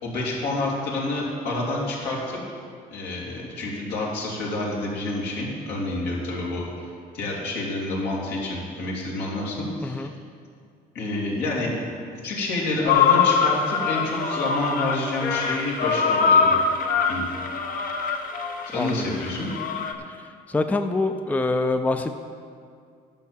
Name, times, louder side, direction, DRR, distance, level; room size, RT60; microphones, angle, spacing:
voice 1, 0.0-2.6 2.9-6.7 7.1-10.1 10.9-11.7 12.2-16.6 17.1-17.3 18.7-19.5, left 2 dB, 80° left, -4 dB, 2.8 m, -28 dB
voice 2, 9.8-10.1 18.7-19.2 20.5-22.2, left 2 dB, 10° left, 7 dB, 0.4 m, -25 dB
sound 1, 12.9-19.9, left 5 dB, 55° left, 0.9 m, -23 dB
10.5 x 5.7 x 7.4 m, 2.3 s
cardioid pair, 110°, 17 cm